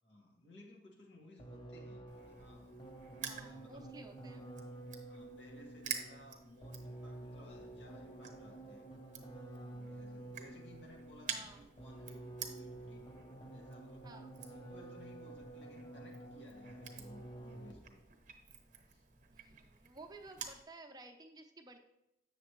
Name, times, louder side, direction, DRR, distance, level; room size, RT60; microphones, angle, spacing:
voice 1, 0.0-2.7 3.1-4.0 5.1-8.9 9.4-13.1 13.5-14.1 14.4-18.0 18.9-19.0, equal, 85° left, 0 dB, 1.8 m, -58 dB
sound 1, 1.4-18.0, right 1 dB, 25° left, 0.7 m, -50 dB
Crushing, 2.1-20.6, right 7 dB, 45° right, 0.9 m, -50 dB
voice 2, 3.2-4.5 11.2-11.7 14.0-14.3 19.3-21.8, right 2 dB, 20° right, 3 dB, 0.6 m, -54 dB
8.0 x 6.6 x 3.1 m, 0.89 s
head